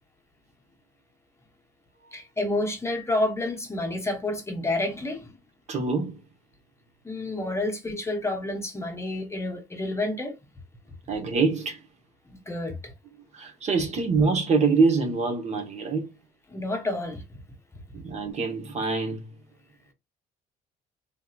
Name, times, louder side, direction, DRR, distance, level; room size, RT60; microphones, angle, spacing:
voice 1, 2.1-5.3 7.0-10.3 12.5-12.9 16.5-17.4, left 2 dB, 15° left, 0.8 m, -29 dB
voice 2, 5.7-6.2 7.4-7.5 11.1-11.8 13.3-16.1 18.0-19.3, right 4 dB, 40° right, 1.0 m, -25 dB
3.5 x 2.7 x 2.3 m
cardioid pair, 110°, 17 cm